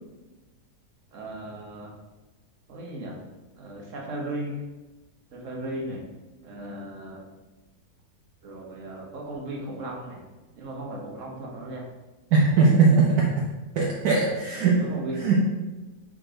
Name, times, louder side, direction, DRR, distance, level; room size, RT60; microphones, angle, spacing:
voice 1, 1.1-1.9 2.7-3.2 3.6-4.5 5.3-6.0 6.4-7.2 8.4-10.3 10.5-11.9 14.5-15.3, right 1 dB, 50° right, -1 dB, 1.5 m, -36 dB
voice 2, 12.3-13.3 13.7-14.8 15.1-15.3, right 4 dB, 70° right, -3 dB, 1.3 m, -20 dB
4.5 x 4.4 x 5.0 m, 1.1 s
omnidirectional pair, 1.7 m